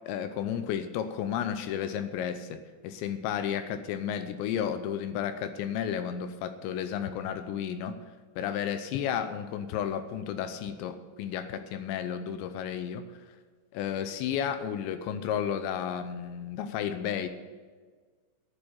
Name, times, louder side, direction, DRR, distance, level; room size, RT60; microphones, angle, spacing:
voice 1, 0.1-8.0 8.4-13.1 13.7-17.3, left 9 dB, 80° left, 10 dB, 2.7 m, -32 dB
11.5 x 9.4 x 7.2 m, 1.5 s
omnidirectional pair, 5.6 m